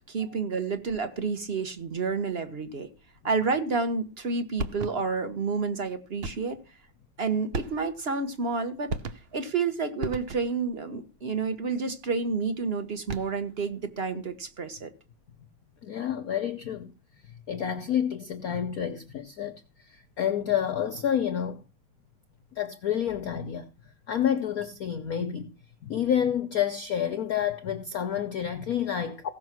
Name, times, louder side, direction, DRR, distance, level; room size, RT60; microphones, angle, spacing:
voice 1, 0.1-2.9 3.2-6.6 7.2-8.9 9.3-14.9, right 4 dB, 35° right, 1.3 m, -29 dB
sound 1, 4.6-5.2 6.2-6.6 7.5-8.1 8.9-9.5 10.0-10.7 12.9-13.5, right 3 dB, 85° right, 0.5 m, -36 dB
voice 2, 15.8-16.9 17.5-21.6 22.6-23.7 24.1-25.5 25.8-29.3, left 9 dB, 60° left, 1.0 m, -29 dB
16.5 x 6.6 x 6.2 m
omnidirectional pair, 2.4 m